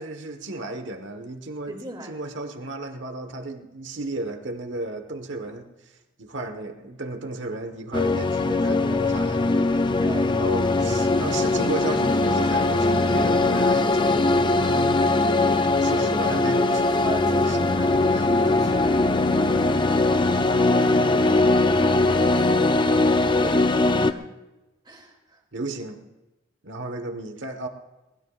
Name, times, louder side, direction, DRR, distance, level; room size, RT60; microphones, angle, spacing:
voice 1, 0.0-1.7 2.1-5.7 6.2-9.4 10.4-15.0 15.8-17.0 17.5-17.6 18.1-18.2 23.4-24.0 25.5-26.1 26.6-27.7, right 2 dB, 65° right, 6 dB, 1.4 m, -34 dB
voice 2, 1.7-2.3 8.5-9.1 10.0-10.7 17.0-18.1 18.4-23.2 23.9-24.4 24.8-25.4, right 1 dB, 25° right, 1 dB, 2.7 m, -39 dB
sound 1, 7.9-24.1, left 2 dB, 25° left, 0.5 m, -21 dB
22.5 x 19.5 x 2.5 m, 1.0 s
head